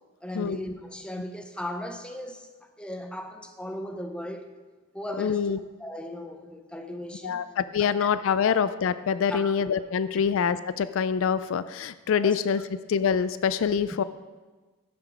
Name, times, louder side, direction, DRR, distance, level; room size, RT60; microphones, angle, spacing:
voice 1, 0.2-2.5 2.8-4.5 4.9-5.5 5.8-7.4 7.8-8.1 9.3-9.5 10.1-10.2 12.2-12.4, left 1 dB, 5° left, 5 dB, 0.7 m, -37 dB
voice 2, 5.2-5.6 7.2-12.6 12.9-14.0, left 7 dB, 65° left, 14 dB, 0.4 m, -25 dB
11.5 x 6.8 x 5.0 m, 1.3 s
head